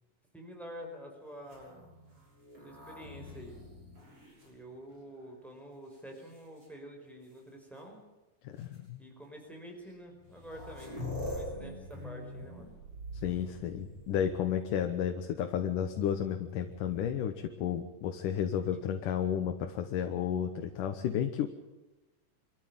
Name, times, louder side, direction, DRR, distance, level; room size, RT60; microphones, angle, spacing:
voice 1, 0.3-1.9 2.6-3.6 4.4-8.0 9.0-10.9 11.3-12.7 18.7-18.8, equal, ahead, 1 dB, 4.9 m, -48 dB
sound 1, 1.4-5.2 5.9-6.7 7.8-7.9 8.6-8.8 9.9-10.0 10.2-14.7 16.6-17.3, left 1 dB, 40° right, 7.7 m, -44 dB
voice 2, 8.4-9.0 13.2-21.5, left 9 dB, 75° left, 6 dB, 2.6 m, -32 dB
25.0 x 14.0 x 9.0 m, 1.1 s
omnidirectional pair, 3.9 m